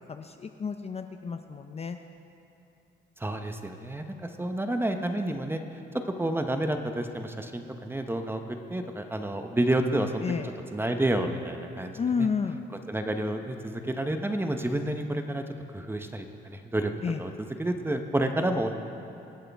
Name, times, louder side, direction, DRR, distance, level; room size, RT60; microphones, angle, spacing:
voice 1, 0.0-2.0 10.2-10.5 12.0-12.7 17.0-17.2, left 5 dB, 30° left, 7 dB, 0.5 m, -31 dB
voice 2, 3.2-5.6 6.2-8.4 8.7-10.2 10.7-12.3 12.9-15.4 15.7-16.9 17.2-18.7, right 1 dB, 10° right, 6 dB, 0.9 m, -29 dB
24.0 x 8.2 x 3.5 m, 2.8 s
cardioid pair, 90°, 20 cm